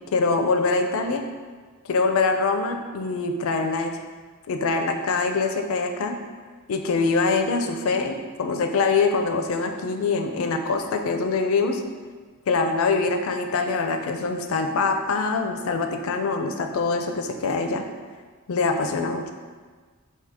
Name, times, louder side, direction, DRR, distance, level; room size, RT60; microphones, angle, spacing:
voice 1, 0.1-1.2 1.9-3.9 4.5-6.2 6.7-11.8 12.5-17.8 18.5-19.3, left 4 dB, 65° left, 5 dB, 0.4 m, -24 dB
4.8 x 2.8 x 3.4 m, 1.5 s
head